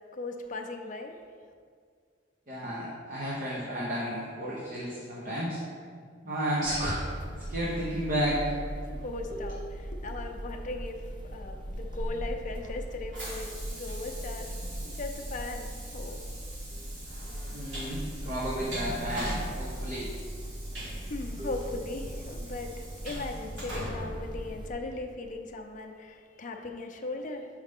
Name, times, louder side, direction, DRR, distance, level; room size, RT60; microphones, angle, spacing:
voice 1, 0.1-1.2 8.9-16.2 21.0-27.5, left 2 dB, 45° left, 4 dB, 0.5 m, -38 dB
voice 2, 2.5-5.6 6.2-7.2 7.5-8.4 9.3-9.4 17.5-20.1 21.4-21.5, equal, 50° right, -5 dB, 0.9 m, -32 dB
sound 1, 6.7-24.7, right 1 dB, 25° right, 0.4 m, -39 dB
Train, 12.0-25.2, right 1 dB, 75° right, 1.6 m, -43 dB
6.5 x 4.8 x 3.6 m, 2.1 s
head